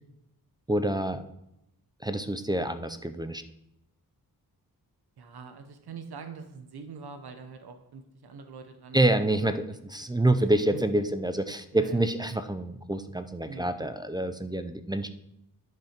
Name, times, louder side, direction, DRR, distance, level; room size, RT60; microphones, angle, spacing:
voice 1, 0.7-1.2 2.0-3.4 8.9-15.1, right 1 dB, 10° right, 9 dB, 0.5 m, -27 dB
voice 2, 5.2-9.5 10.0-10.1 10.4-10.5 10.7-10.8 11.7-12.0 13.4-14.0, right 5 dB, 90° right, 7 dB, 1.0 m, -44 dB
10.5 x 5.5 x 5.1 m, 0.83 s
wide cardioid pair, 115°, 37 cm